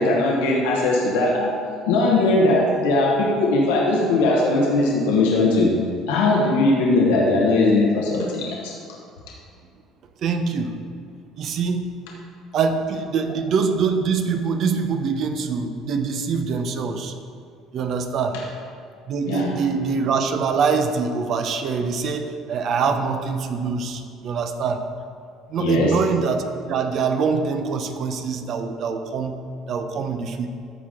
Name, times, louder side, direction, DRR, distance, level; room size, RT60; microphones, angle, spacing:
voice 1, 0.0-1.6 1.9-5.8 6.1-8.7 19.3-19.6 25.6-26.0, left 2 dB, 90° left, -2 dB, 1.1 m, -19 dB
voice 2, 10.2-10.8 11.4-11.8 12.5-17.1 17.7-18.4 19.1-24.8 25.5-29.4 29.7-30.5, right 5 dB, 60° right, 6 dB, 0.8 m, -24 dB
14.0 x 4.8 x 3.7 m, 2.3 s
supercardioid pair, 85°, 0 cm